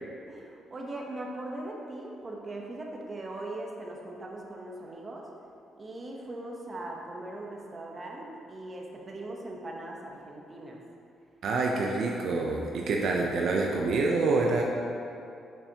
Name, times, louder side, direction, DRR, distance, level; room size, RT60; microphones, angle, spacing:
voice 1, 0.0-5.3 5.8-10.8, right 1 dB, 35° right, -1 dB, 0.9 m, -40 dB
voice 2, 11.4-14.6, right 3 dB, 70° right, 0 dB, 0.5 m, -27 dB
6.9 x 5.6 x 2.8 m, 2.6 s
cardioid pair, 90°, 0 cm